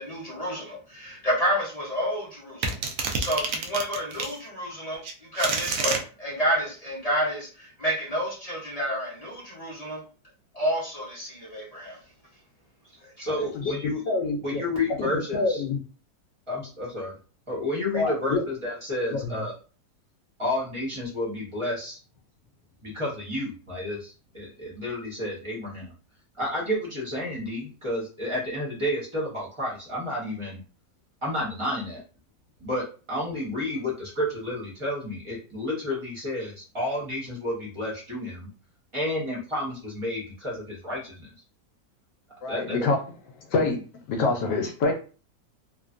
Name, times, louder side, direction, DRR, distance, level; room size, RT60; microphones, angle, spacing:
voice 1, 0.0-2.7 3.2-5.0 5.3-10.0 10.5-12.0 13.7-13.8, equal, 45° left, -6 dB, 0.4 m, -29 dB
sound 1, 2.6-4.4 5.0-6.0, right 4 dB, 85° right, 0.7 m, -28 dB
voice 2, 13.2-14.0 14.4-15.6 16.5-17.1 17.5-19.5 20.4-22.0 22.8-25.9 26.4-30.6 31.2-32.0 32.6-38.5 38.9-41.3 42.5-42.8, left 1 dB, 25° right, -5 dB, 0.8 m, -31 dB
voice 3, 14.1-14.6 15.0-15.8 17.9-18.4 19.1-19.4 42.4-43.0 43.5-43.8 44.1-44.9, left 3 dB, 75° left, 3 dB, 1.2 m, -26 dB
3.2 x 2.2 x 2.5 m, 0.37 s
omnidirectional pair, 2.0 m